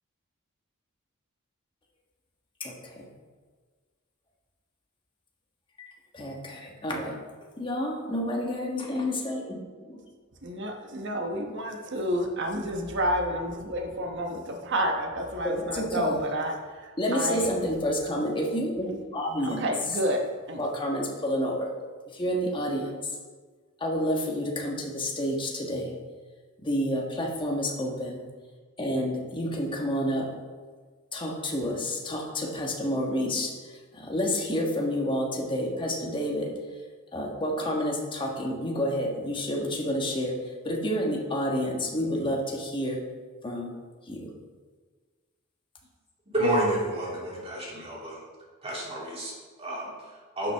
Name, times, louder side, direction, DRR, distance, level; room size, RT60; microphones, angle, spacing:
voice 1, 2.6-3.1 5.8-7.2 7.6-10.0 15.6-16.2 17.0-19.6 20.6-21.7 22.1-23.1 23.8-25.9 26.6-28.2 28.8-30.3 31.1-36.5 37.1-40.4 40.6-43.0 43.4-43.7 44.1-44.3, equal, 25° left, -1 dB, 1.3 m, -29 dB
voice 2, 10.4-16.5 16.8-17.5 19.4-20.2 20.5-20.6, equal, 60° right, 3 dB, 1.1 m, -30 dB
voice 3, 46.3-48.2 48.6-50.5, right 1 dB, 30° right, -5 dB, 2.6 m, -30 dB
11.5 x 5.8 x 3.4 m, 1.5 s
head